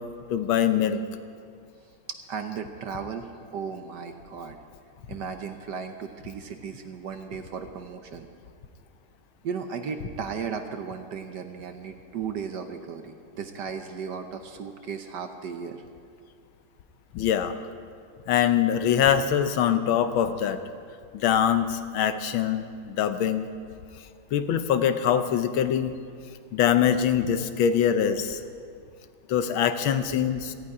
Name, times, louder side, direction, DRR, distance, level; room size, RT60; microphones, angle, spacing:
voice 1, 0.3-1.0 17.1-17.5 18.3-20.6 21.1-23.5 24.3-25.9 26.5-28.4 29.3-30.5, left 9 dB, 75° left, 10 dB, 1.5 m, -23 dB
voice 2, 2.1-4.6 5.1-8.3 9.4-15.8, right 6 dB, 65° right, 6 dB, 1.2 m, -35 dB
18.0 x 14.5 x 4.8 m, 2.2 s
omnidirectional pair, 2.4 m